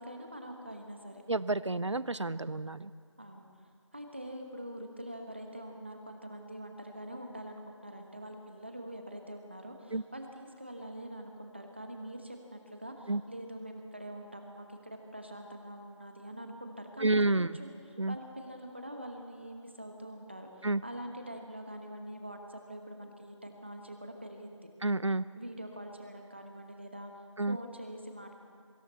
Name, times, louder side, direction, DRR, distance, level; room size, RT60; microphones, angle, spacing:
voice 1, 0.0-1.2 3.2-3.5 3.9-17.0 17.6-17.7 18.1-24.7 25.4-27.1 27.5-28.3, equal, 20° right, 3 dB, 1.3 m, -44 dB
voice 2, 1.3-2.9 9.9-10.0 13.1-13.2 17.0-17.6 18.0-18.2 20.6-20.8 24.8-25.3 27.4-27.6, right 2 dB, 65° right, 17 dB, 0.7 m, -29 dB
26.5 x 24.0 x 4.2 m, 2.3 s
figure-of-eight pair, 175°, 16 cm